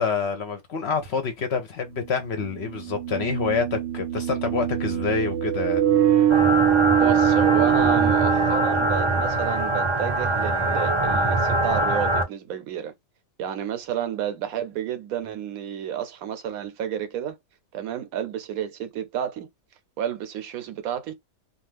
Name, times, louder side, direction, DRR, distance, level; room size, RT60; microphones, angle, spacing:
voice 1, 0.0-5.8, left 5 dB, 60° left, 0.7 m, -27 dB
sound 1, 1.1-1.2 2.6-9.5, right 11 dB, 60° right, 0.8 m, -23 dB
sound 2, 6.3-12.2, right 1 dB, 40° right, 0.4 m, -23 dB
voice 2, 6.9-12.9 13.4-17.4 17.7-19.5 20.0-21.1, right 9 dB, 85° right, 1.1 m, -31 dB
2.4 x 2.3 x 3.2 m
omnidirectional pair, 1.5 m